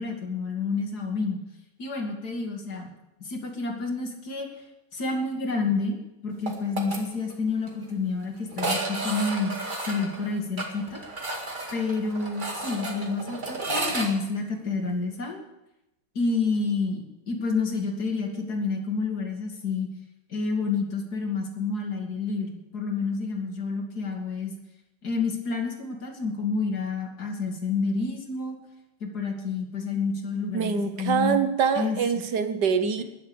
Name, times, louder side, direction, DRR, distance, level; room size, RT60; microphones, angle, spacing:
voice 1, 0.0-1.4 1.8-2.9 3.2-4.5 4.9-5.9 6.2-9.5 9.8-11.0 11.7-15.4 16.1-19.9 20.3-24.5 25.0-28.6 29.0-31.4 31.7-32.0 33.0-33.1, left 4 dB, 60° left, 2 dB, 2.7 m, -29 dB
sound 1, 6.5-7.0 7.3-7.4 7.7-7.8 8.5-14.1, right 2 dB, 25° right, 2.1 m, -32 dB
voice 2, 30.5-33.0, right 6 dB, 70° right, 9 dB, 1.7 m, -24 dB
20.5 x 7.3 x 7.0 m, 0.92 s
omnidirectional pair, 1.9 m